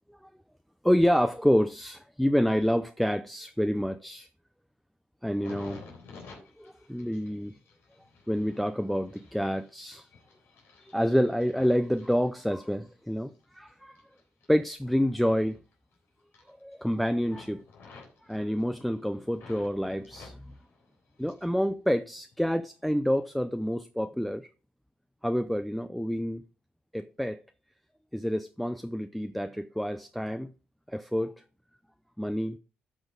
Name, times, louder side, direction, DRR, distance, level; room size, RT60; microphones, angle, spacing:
voice 1, 0.8-4.3 5.2-5.8 6.6-7.5 8.3-10.1 10.8-14.0 14.5-15.6 16.5-17.6 18.3-20.4 21.2-24.5 25.2-26.4 26.9-27.4 28.1-30.5 30.9-31.3 32.2-32.6, equal, ahead, 0.6 m, -28 dB
sound 1, 5.2-12.9 13.3-15.9 16.2-16.9 17.2-19.7 20.0-21.6 21.9-22.6 23.2-23.4, left 4 dB, 80° left, 3.6 m, -52 dB
12.0 x 6.1 x 3.9 m
cardioid pair, 80°, 4 cm